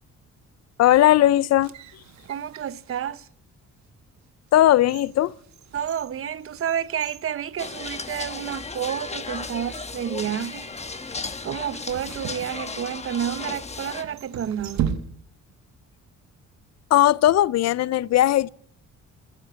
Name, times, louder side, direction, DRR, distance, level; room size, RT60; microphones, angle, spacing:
voice 1, 0.8-1.7 4.5-5.3 16.9-18.5, left 13 dB, 60° left, 0.5 m, -18 dB
sound 1, 1.4-3.2 3.8-3.9 4.5-8.2 8.5-8.6 9.4-9.8 11.8-13.2 14.0-15.6 15.8-15.9, right 9 dB, 65° right, 1.1 m, -36 dB
voice 2, 2.2-3.3 5.7-10.7 11.4-14.9, right 9 dB, 45° right, 0.6 m, -30 dB
sound 2, 7.6-14.0, left 4 dB, 20° left, 1.1 m, -35 dB
11.5 x 9.7 x 8.2 m
cardioid pair, 90°, 30 cm